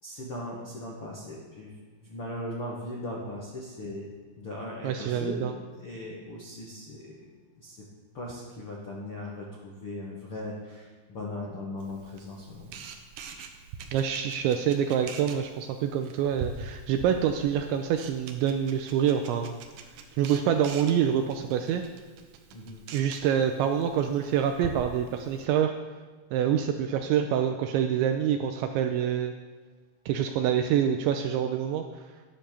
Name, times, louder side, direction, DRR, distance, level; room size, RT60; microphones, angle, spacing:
voice 1, 0.0-4.1 4.4-5.5 5.8-7.3 7.5-7.8 8.1-12.9 22.5-22.8, left 1 dB, 80° left, -4 dB, 1.2 m, -38 dB
voice 2, 4.8-5.5 13.9-19.6 20.2-21.8 22.9-25.7 26.3-29.3 30.1-31.8, right 9 dB, 90° right, 6 dB, 2.7 m, -26 dB
Camera, 11.8-25.4, right 5 dB, 70° right, 2.6 m, -44 dB
13.0 x 10.0 x 6.9 m, 1.4 s
omnidirectional pair, 5.9 m